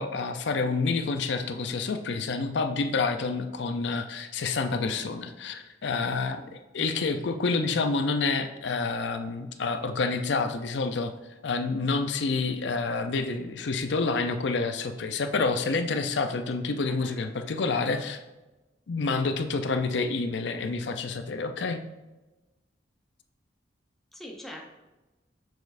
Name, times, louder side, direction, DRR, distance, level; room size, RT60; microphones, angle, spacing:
voice 1, 0.0-6.4 6.7-11.1 11.4-18.2 18.9-21.8, left 4 dB, 70° left, 8 dB, 0.5 m, -28 dB
voice 2, 16.8-17.2 17.7-18.1 24.1-24.7, equal, ahead, 1 dB, 0.7 m, -44 dB
7.0 x 6.1 x 2.5 m, 1.1 s
head